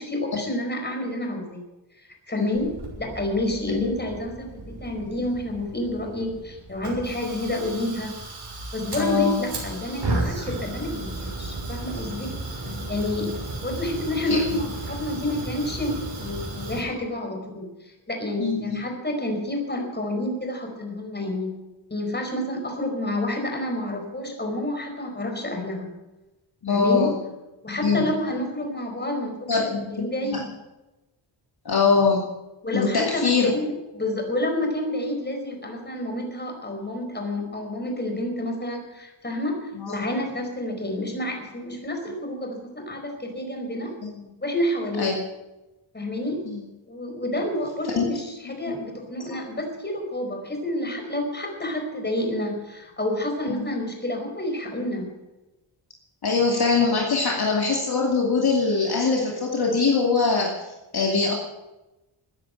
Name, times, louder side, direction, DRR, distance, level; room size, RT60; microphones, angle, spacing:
voice 1, 0.0-1.6 2.3-8.1 8.7-12.4 12.9-25.9 26.7-27.2 27.6-29.6 29.9-30.5 32.6-43.9 44.4-45.2 45.9-46.5 46.9-55.2, left 1 dB, 20° left, 2 dB, 4.8 m, -29 dB
Fire, 2.5-16.8, right 2 dB, 55° right, 6.5 m, -34 dB
voice 2, 9.0-9.4 12.7-12.9 14.3-14.4 18.4-18.8 26.6-27.1 27.8-28.1 29.5-30.1 31.6-32.3 32.7-33.5 39.8-40.0 45.0-45.1 46.5-46.6 48.0-48.1 48.7-48.8 53.5-53.6 56.2-60.5 60.9-61.3, left 4 dB, 50° left, -1 dB, 2.5 m, -22 dB
15.0 x 10.0 x 9.1 m, 1.0 s
wide cardioid pair, 105°, 49 cm